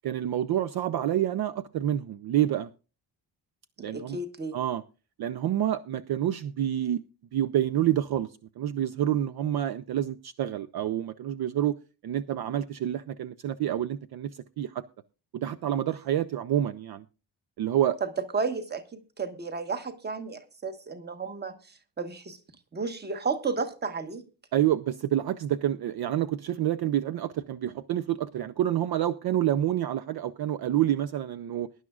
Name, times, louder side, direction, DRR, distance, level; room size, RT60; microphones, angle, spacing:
voice 1, 0.0-2.7 3.8-4.2 4.5-4.8 5.2-7.0 7.3-8.3 8.6-11.8 12.0-14.3 14.6-14.8 15.3-17.0 17.6-18.0 24.5-31.7, right 11 dB, 55° right, 0.6 m, -28 dB
voice 2, 3.8-4.6 18.0-22.4 22.7-24.2, right 4 dB, 20° right, 1.2 m, -33 dB
22.0 x 11.0 x 2.4 m
wide cardioid pair, 180°, 44 cm